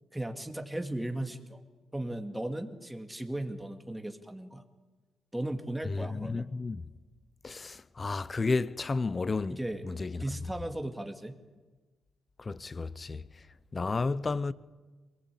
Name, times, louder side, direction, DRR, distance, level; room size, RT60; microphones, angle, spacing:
voice 1, 0.1-1.6 1.9-4.6 5.3-6.5 9.5-9.9 10.2-11.4, right 1 dB, 5° right, 2.3 m, -36 dB
voice 2, 5.8-6.8 7.4-9.6 9.8-10.2 12.4-13.3 13.7-14.5, left 3 dB, 35° left, 0.8 m, -32 dB
23.0 x 18.5 x 8.5 m
supercardioid pair, 65°, 0 cm